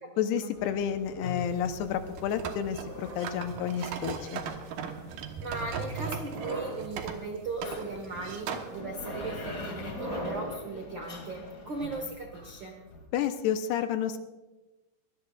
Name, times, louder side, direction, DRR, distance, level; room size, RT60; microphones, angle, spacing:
voice 1, 0.2-4.4 13.1-14.2, left 8 dB, 85° left, 8 dB, 2.9 m, -30 dB
sound 1, 0.6-13.1, left 3 dB, 45° left, 1.2 m, -45 dB
sound 2, 1.5-8.7, right 6 dB, 70° right, 2.6 m, -38 dB
sound 3, 2.7-4.2 4.9-5.3 6.1-6.8 7.5-7.8 8.8-10.6, right 1 dB, 10° right, 4.3 m, -40 dB
voice 2, 5.1-12.8, right 3 dB, 85° right, 2 dB, 1.0 m, -38 dB
24.0 x 18.5 x 2.4 m, 1.1 s
omnidirectional pair, 4.7 m